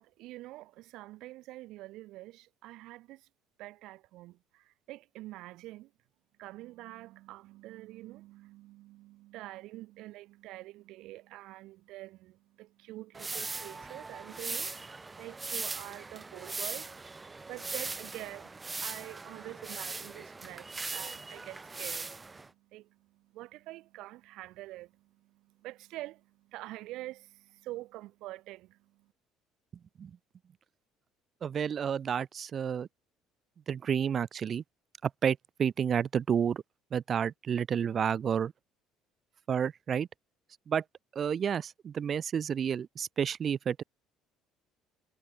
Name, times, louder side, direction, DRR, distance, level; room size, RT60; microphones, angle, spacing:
voice 1, 0.0-3.3 3.6-5.9 6.4-29.1, right 17 dB, 75° right, 1.9 m, -46 dB
sound 1, 13.1-22.5, right 3 dB, 20° right, 2.0 m, -40 dB
voice 2, 31.4-32.9 33.7-34.6 35.2-36.6 36.9-38.5 39.5-40.1 40.7-40.8 41.2-43.8, right 8 dB, 40° right, 0.5 m, -30 dB
cardioid pair, 115°, 0 cm